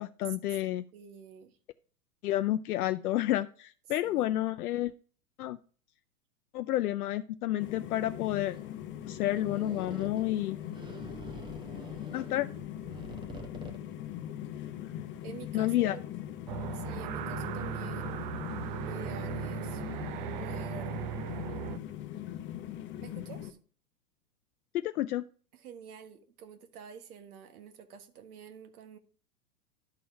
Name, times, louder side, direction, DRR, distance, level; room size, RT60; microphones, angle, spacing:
voice 1, 0.0-0.8 2.2-4.9 5.4-5.6 6.5-8.6 9.0-10.6 12.1-12.5 15.5-16.0 24.7-25.2, left 14 dB, 70° left, 0.6 m, -30 dB
voice 2, 0.9-1.6 4.0-4.4 15.2-16.0 16.7-18.5 18.8-19.8 20.4-21.1 23.0-23.6 25.5-29.0, right 7 dB, 65° right, 1.6 m, -48 dB
sound 1, 7.6-23.5, left 11 dB, 25° left, 0.8 m, -41 dB
sound 2, 8.0-13.8, right 2 dB, 10° right, 0.8 m, -47 dB
sound 3, 16.5-21.8, right 11 dB, 35° right, 0.4 m, -38 dB
11.5 x 4.3 x 4.7 m
hypercardioid pair, 110°, 47 cm